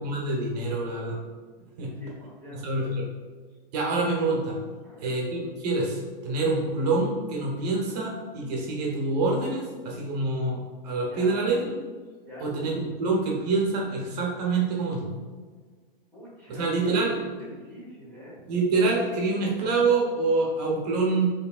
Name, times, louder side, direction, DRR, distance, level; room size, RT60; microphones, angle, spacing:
voice 1, 0.0-1.2 1.8-2.0 2.5-3.1 3.7-4.6 5.0-11.7 12.4-15.1 16.5-17.2 18.5-21.3, right 3 dB, 45° right, -2 dB, 1.0 m, -26 dB
voice 2, 1.8-2.9 4.8-5.2 11.1-11.5 12.2-12.5 16.1-16.9 17.4-18.4, equal, 5° left, -9 dB, 0.9 m, -45 dB
4.9 x 3.2 x 2.4 m, 1.5 s
hypercardioid pair, 155°, 29 cm